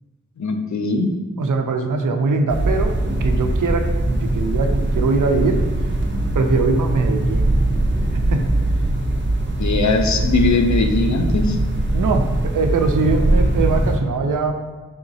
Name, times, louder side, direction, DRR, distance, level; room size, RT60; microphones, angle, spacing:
voice 1, 0.4-1.1 9.6-11.6, left 3 dB, 65° left, 5 dB, 0.5 m, -20 dB
voice 2, 1.4-5.6 6.3-7.5 8.1-8.5 11.9-14.5, right 3 dB, 80° right, 5 dB, 0.5 m, -22 dB
sound 1, 2.5-14.0, right 1 dB, 40° right, 0.6 m, -21 dB
3.9 x 3.5 x 2.7 m, 1.3 s
wide cardioid pair, 75°, 31 cm